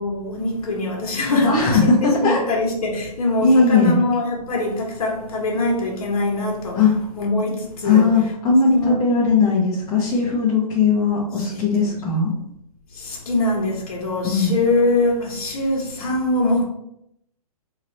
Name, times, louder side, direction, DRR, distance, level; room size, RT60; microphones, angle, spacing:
voice 1, 0.0-8.3 8.7-9.1 11.4-12.0 13.0-16.6, left 2 dB, 65° left, 1.5 m, -23 dB
voice 2, 1.5-2.5 3.4-4.0 6.7-6.9 7.9-12.3 14.2-14.5, left 4 dB, 20° left, 1.0 m, -18 dB
3.1 x 3.0 x 4.0 m
hypercardioid pair, 140°, 20 cm